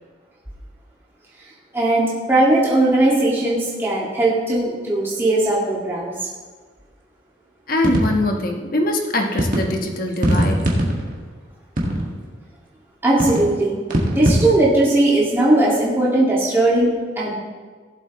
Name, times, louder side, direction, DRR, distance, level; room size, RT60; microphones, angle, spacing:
voice 1, 1.7-6.3 13.0-13.8 14.1-17.3, right 2 dB, 10° right, -7 dB, 2.0 m, -18 dB
voice 2, 7.7-10.7, left 1 dB, 45° left, 2 dB, 1.3 m, -22 dB
sound 1, 7.8-8.4 9.4-9.7 10.1-11.2 11.8-12.3 13.2-13.5 13.9-14.6, equal, 40° right, 1.8 m, -20 dB
17.0 x 7.9 x 3.1 m, 1.5 s
head